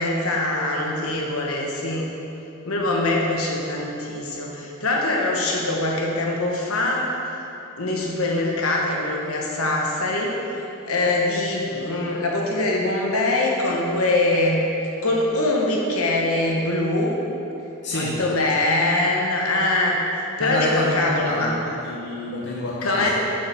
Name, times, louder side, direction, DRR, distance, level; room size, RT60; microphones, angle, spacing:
voice 1, 0.0-2.1 2.6-7.1 7.8-10.6 10.8-14.6 15.0-17.2 17.9-20.0 20.4-21.5 22.8-23.1, left 2 dB, 75° left, -1 dB, 1.2 m, -23 dB
voice 2, 17.8-18.2 20.4-23.1, left 1 dB, 55° left, -5 dB, 0.9 m, -27 dB
7.7 x 4.9 x 5.7 m, 2.9 s
head